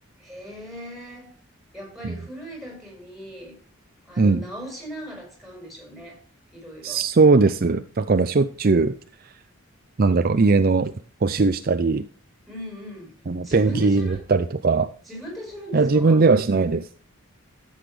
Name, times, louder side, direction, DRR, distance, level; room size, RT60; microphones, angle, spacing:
voice 1, 0.2-1.4 1.7-3.6 4.0-6.2 6.5-7.0 12.5-13.1 13.4-14.2 15.1-16.2, equal, ahead, 0 dB, 5.0 m, -39 dB
voice 2, 6.8-8.9 10.0-10.9 11.2-12.1 13.3-14.9 15.7-16.9, right 4 dB, 45° right, 10 dB, 0.5 m, -19 dB
13.5 x 8.1 x 3.2 m, 0.40 s
head